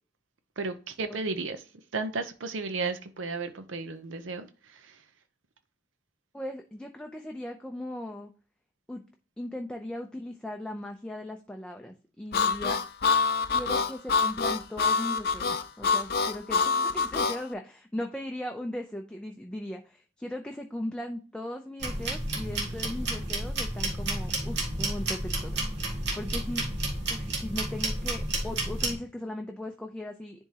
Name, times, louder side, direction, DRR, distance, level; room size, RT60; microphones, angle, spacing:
voice 1, 0.6-1.6 1.9-5.0, right 3 dB, 85° right, 0.7 m, -34 dB
voice 2, 6.3-8.3 8.9-9.0 9.4-12.8 13.5-26.7 27.1-30.5, left 1 dB, 5° left, 0.5 m, -38 dB
Harmonica, 12.3-17.4, left 5 dB, 55° left, 0.5 m, -26 dB
sound 1, 21.8-29.0, right 2 dB, 60° right, 1.7 m, -31 dB
10.5 x 3.6 x 2.8 m
head